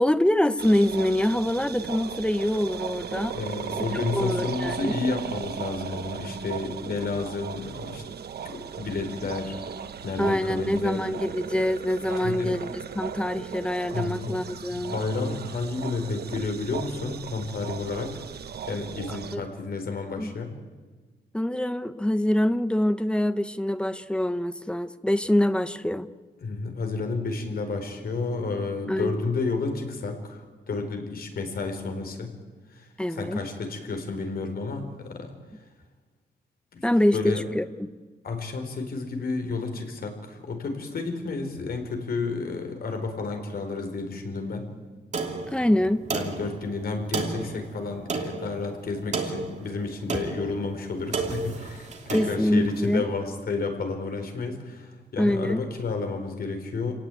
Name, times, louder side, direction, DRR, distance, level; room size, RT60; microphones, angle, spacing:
voice 1, 0.0-3.4 3.9-5.0 10.2-15.0 19.3-19.4 20.2-20.3 21.3-26.1 28.9-29.2 33.0-33.4 36.8-38.0 45.5-46.0 52.1-53.0 55.2-55.6, left 1 dB, 5° left, 11 dB, 0.8 m, -25 dB
sound 1, 0.6-19.4, right 8 dB, 65° right, 1.1 m, -37 dB
voice 2, 3.3-8.0 8.4-9.6 10.0-11.0 12.1-12.6 13.9-14.4 14.7-18.2 18.7-20.5 26.4-32.3 32.7-35.3 36.7-36.8 37.1-37.4 38.2-44.7 46.1-56.9, left 3 dB, 60° left, 6 dB, 4.3 m, -31 dB
Clock Old, 45.1-52.9, right 4 dB, 40° right, 2.7 m, -33 dB
28.0 x 18.0 x 9.1 m, 1.4 s
wide cardioid pair, 180°, 18 cm